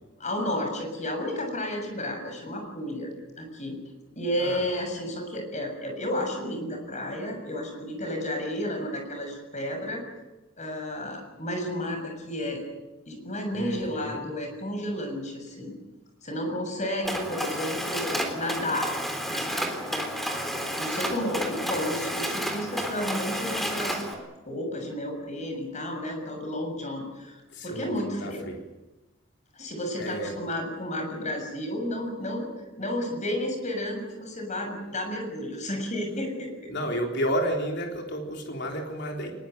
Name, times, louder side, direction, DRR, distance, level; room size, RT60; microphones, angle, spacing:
voice 1, 0.2-3.1 3.4-3.8 4.2-10.0 10.6-12.6 13.1-15.7 16.2-18.9 19.3-24.0 24.5-28.5 29.5-32.5 32.8-36.7, left 1 dB, 35° left, 4 dB, 6.9 m, -32 dB
voice 2, 13.5-14.2 27.5-28.6 30.0-30.4 36.7-39.5, equal, 60° left, 2 dB, 3.8 m, -31 dB
Mechanisms, 17.0-24.1, equal, ahead, 3.7 m, -31 dB
23.0 x 21.5 x 9.3 m, 1.0 s
head